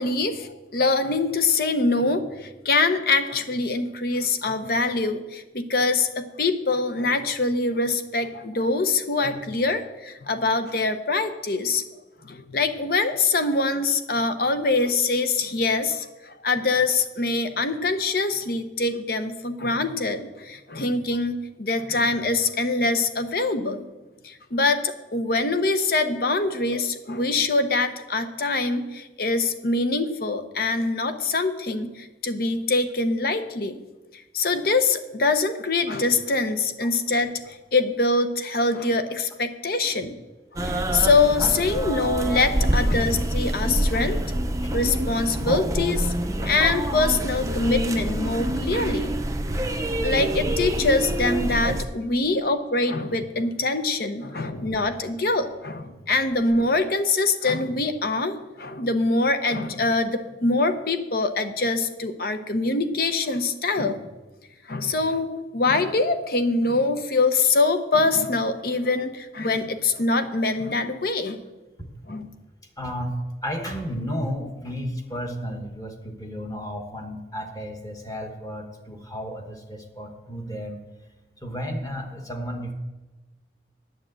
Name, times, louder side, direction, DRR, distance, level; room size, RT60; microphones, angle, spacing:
voice 1, 0.0-11.8 12.2-23.9 24.2-33.8 34.1-40.2 40.6-44.2 44.7-46.1 46.4-49.2 50.0-64.0 64.7-65.3 65.5-71.4 72.1-72.3, left 3 dB, 55° left, 9 dB, 0.8 m, -24 dB
sound 1, 40.6-51.8, right 1 dB, 20° right, 0.6 m, -26 dB
voice 2, 72.8-80.8 81.4-82.7, equal, 20° left, 3 dB, 1.2 m, -33 dB
9.2 x 7.4 x 7.7 m, 1.2 s
head